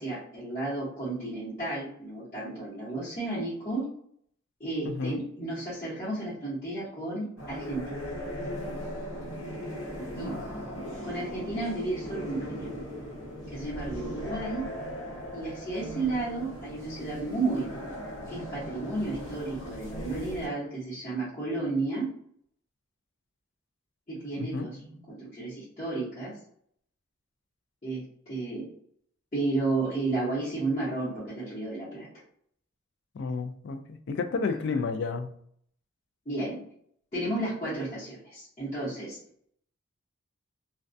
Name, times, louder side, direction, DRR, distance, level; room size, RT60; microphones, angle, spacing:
voice 1, 0.0-3.8 4.6-7.8 10.1-10.3 10.7-12.7 13.5-14.6 15.3-22.1 24.1-24.8 25.1-26.4 27.8-28.6 29.3-32.1 36.3-36.6 37.1-39.2, right 2 dB, 35° left, -11 dB, 0.9 m, -32 dB
voice 2, 4.9-5.2 10.1-10.4 24.4-24.7 33.1-35.3, left 4 dB, 60° left, 7 dB, 0.3 m, -31 dB
sound 1, 7.4-20.5, equal, 85° left, 1.1 m, -38 dB
2.2 x 2.2 x 2.5 m, 0.65 s
head